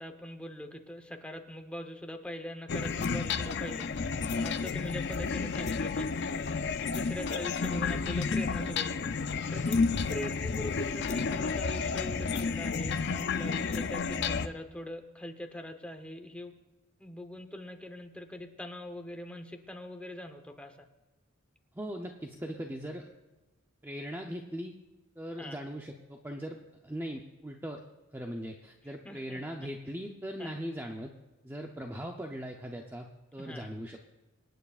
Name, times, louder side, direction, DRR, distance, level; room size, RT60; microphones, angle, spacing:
voice 1, 0.0-6.1 6.8-9.8 10.1-16.5 17.0-20.9 25.4-25.6 28.8-29.7 30.4-30.6 33.4-33.7, left 1 dB, 5° left, 5 dB, 0.9 m, -42 dB
sound 1, 2.7-14.5, left 4 dB, 55° left, 0.5 m, -31 dB
voice 2, 21.7-23.1 23.8-24.7 25.2-26.6 26.8-27.8 28.1-31.1 31.4-34.0, equal, 10° right, 2 dB, 0.6 m, -39 dB
26.5 x 9.2 x 2.4 m, 1.1 s
head